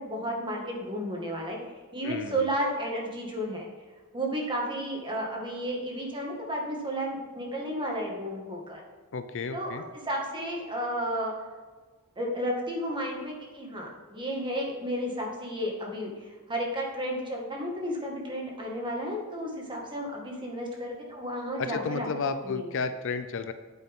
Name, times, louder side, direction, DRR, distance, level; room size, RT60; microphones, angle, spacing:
voice 1, 0.0-1.6 1.9-3.7 4.1-8.8 9.5-11.3 12.2-22.7, equal, 20° right, -1 dB, 1.9 m, -32 dB
voice 2, 2.0-2.4 9.1-9.8 21.6-23.5, left 4 dB, 60° left, 10 dB, 0.6 m, -32 dB
9.1 x 8.3 x 3.7 m, 1.4 s
head